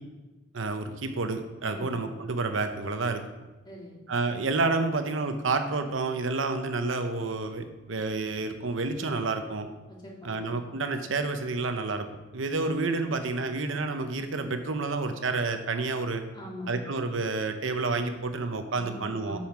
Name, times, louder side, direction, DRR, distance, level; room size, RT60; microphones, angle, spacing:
voice 1, 0.5-3.2 4.1-9.7 10.2-12.1 12.3-16.2 16.7-19.4, right 3 dB, 85° right, 7 dB, 0.8 m, -29 dB
voice 2, 1.6-2.0 3.6-4.0 9.9-10.5 16.3-16.7 18.7-19.4, left 1 dB, 25° left, -3 dB, 2.1 m, -43 dB
7.3 x 5.7 x 6.0 m, 1.1 s
head